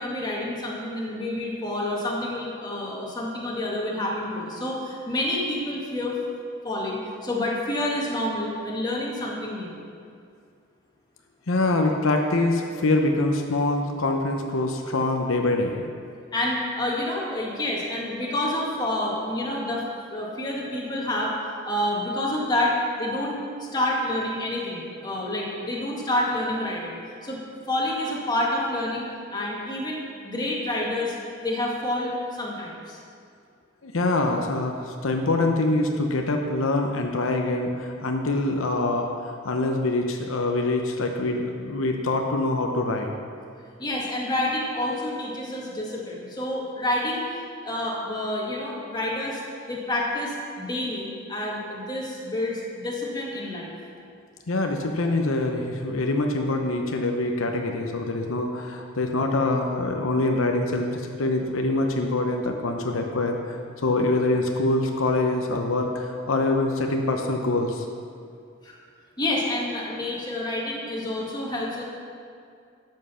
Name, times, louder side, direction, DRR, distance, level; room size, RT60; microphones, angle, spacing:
voice 1, 0.0-6.2 6.6-9.8 16.3-19.8 20.1-21.3 21.6-27.4 27.7-29.1 29.3-31.1 31.4-33.0 43.8-47.2 47.6-49.4 49.7-53.7 68.6-68.8 69.2-71.8, left 1 dB, 20° left, -3 dB, 1.9 m, -28 dB
voice 2, 11.5-15.8 33.8-43.1 54.5-67.8, left 2 dB, 80° left, 3 dB, 0.9 m, -25 dB
12.5 x 7.7 x 5.7 m, 2.3 s
head